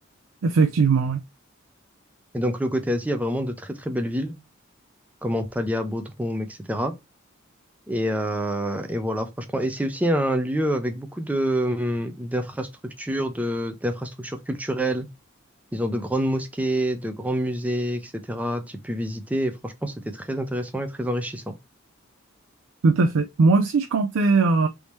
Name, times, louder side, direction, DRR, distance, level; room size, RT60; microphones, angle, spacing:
voice 1, 0.4-1.2 22.8-24.7, right 4 dB, 90° right, 0.4 m, -19 dB
voice 2, 2.3-4.4 5.2-6.9 7.9-15.1 15.7-21.5, equal, 5° right, 0.5 m, -27 dB
3.5 x 2.7 x 3.0 m
head